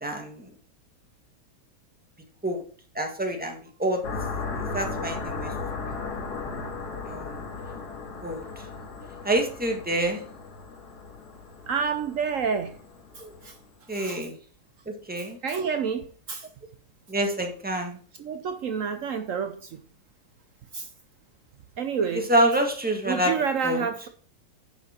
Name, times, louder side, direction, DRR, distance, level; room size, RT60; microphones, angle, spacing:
voice 1, 0.0-0.3 2.4-2.6 2.9-4.0 4.7-5.5 7.1-7.3 8.2-8.4 9.2-10.2 13.9-14.3 15.1-15.4 17.1-18.0 22.3-23.3 23.6-23.8, right 1 dB, 5° right, 1.3 m, -26 dB
sound 1, 4.0-13.6, left 4 dB, 50° left, 1.9 m, -36 dB
voice 2, 11.7-12.7 13.2-13.5 13.9-14.2 15.2-16.5 18.2-19.8 20.7-20.9 21.8-22.3 23.1-24.1, right 6 dB, 90° right, 0.7 m, -29 dB
10.5 x 5.8 x 4.4 m
omnidirectional pair, 2.4 m